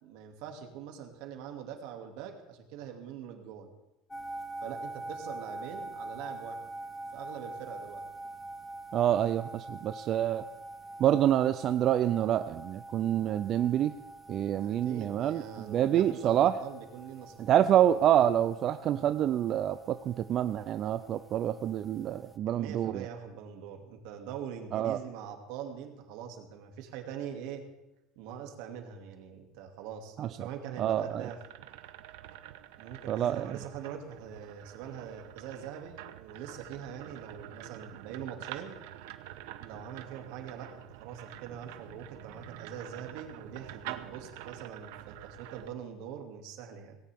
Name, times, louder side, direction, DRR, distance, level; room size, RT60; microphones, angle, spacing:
voice 1, 0.0-3.7 4.6-6.6 7.1-8.0 14.5-17.4 18.1-18.3 22.5-27.6 28.2-31.4 32.8-38.8 39.6-47.0, right 8 dB, 65° right, 4 dB, 2.4 m, -43 dB
sound 1, 4.1-22.4, right 2 dB, 5° left, 0.9 m, -45 dB
voice 2, 8.9-10.4 11.0-13.9 14.3-16.5 17.4-23.1 24.7-25.0 30.2-30.5 30.8-31.3 33.1-33.6, right 11 dB, 35° right, 10 dB, 0.4 m, -27 dB
sound 2, 30.8-45.7, right 13 dB, 85° right, 1.0 m, -47 dB
18.0 x 17.5 x 3.6 m, 0.94 s
cardioid pair, 170°, 0 cm